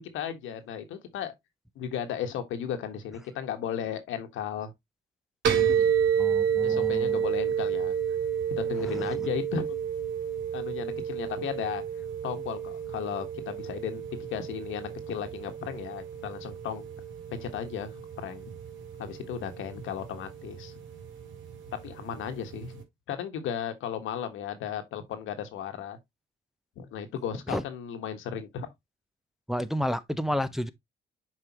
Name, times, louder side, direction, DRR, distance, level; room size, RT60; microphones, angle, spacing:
voice 1, 0.0-1.3 1.7-4.7 5.7-6.0 6.6-7.9 8.6-9.7 10.5-11.8 12.2-14.0 14.3-16.8 17.3-18.5 19.0-20.7 21.8-26.0 26.8-28.7, left 8 dB, 85° left, 1.4 m, -35 dB
sound 1, 5.4-22.8, right 8 dB, 75° right, 2.0 m, -31 dB
voice 2, 6.2-7.3 8.8-9.2 27.5-27.6 29.5-30.7, equal, ahead, 0.6 m, -31 dB
7.5 x 4.9 x 2.9 m
cardioid pair, 90°, 20 cm